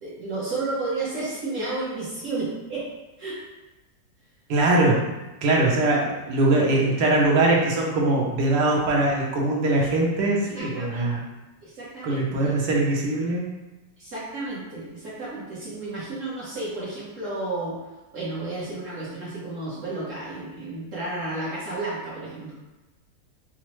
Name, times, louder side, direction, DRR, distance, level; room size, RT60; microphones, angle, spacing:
voice 1, 0.0-2.9 3.2-3.4 10.5-11.0 11.6-12.5 14.0-17.8 18.1-22.5, right 2 dB, 50° right, -8 dB, 1.2 m, -32 dB
voice 2, 4.5-5.0 5.4-11.2 12.0-13.5, right 2 dB, 75° right, -3 dB, 1.4 m, -22 dB
5.1 x 2.1 x 3.0 m, 1.1 s
omnidirectional pair, 1.9 m